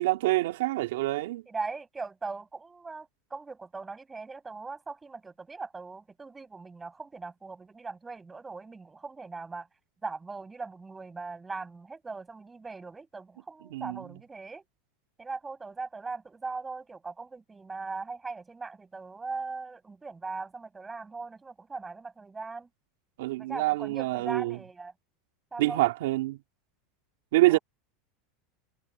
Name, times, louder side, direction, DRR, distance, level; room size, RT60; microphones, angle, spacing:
voice 1, 0.0-1.4 13.7-14.0 23.2-24.6 25.6-26.4 27.3-27.6, right 19 dB, 80° right, 3.0 m, -26 dB
voice 2, 1.5-9.7 10.0-14.7 15.2-22.7 23.4-24.9 25.5-25.8 27.5-27.6, right 4 dB, 10° right, 7.4 m, -40 dB
supercardioid pair, 155°, 0 cm